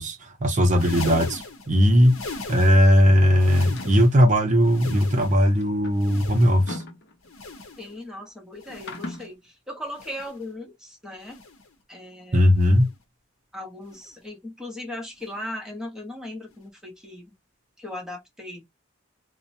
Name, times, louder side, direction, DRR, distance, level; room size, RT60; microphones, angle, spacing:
voice 1, 0.0-2.2 2.5-6.8 12.3-12.9, equal, 35° right, 0.6 m, -18 dB
sound 1, 0.6-3.0 3.3-4.3 4.6-5.5 5.9-6.8 7.2-8.0 8.5-9.2 9.9-10.5 11.2-11.7 12.5-13.0 13.9-14.2 15.2-15.4 16.5-16.6, left 3 dB, 85° left, 0.7 m, -39 dB
sound 2, 3.6-4.1 5.2-7.6 8.7-9.4, left 2 dB, 55° left, 0.6 m, -39 dB
voice 2, 7.8-11.4 11.9-12.5 13.5-17.3 17.8-18.6, left 1 dB, 5° right, 0.8 m, -38 dB
2.9 x 2.1 x 2.5 m
head